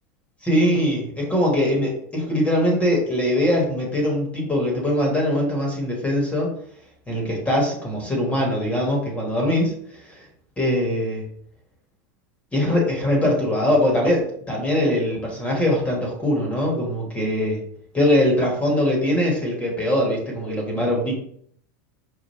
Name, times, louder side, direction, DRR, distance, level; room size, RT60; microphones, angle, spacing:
voice 1, 0.4-6.5 7.1-9.7 10.0-10.2 10.6-11.3 12.5-17.6 17.9-21.1, left 1 dB, 15° left, -1 dB, 1.2 m, -22 dB
5.4 x 2.4 x 3.0 m, 0.64 s
supercardioid pair, 135°, 10 cm